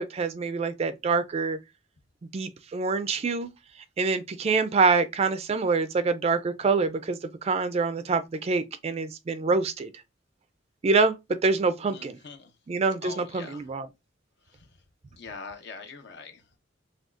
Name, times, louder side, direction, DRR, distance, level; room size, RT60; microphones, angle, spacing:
voice 1, 0.0-1.6 2.3-3.5 4.0-9.9 10.8-11.2 11.4-12.2 12.7-13.9, right 4 dB, 30° right, 0.3 m, -25 dB
voice 2, 11.9-12.5 13.0-13.7 15.1-16.6, left 4 dB, 60° left, 0.8 m, -43 dB
6.0 x 2.3 x 2.4 m
head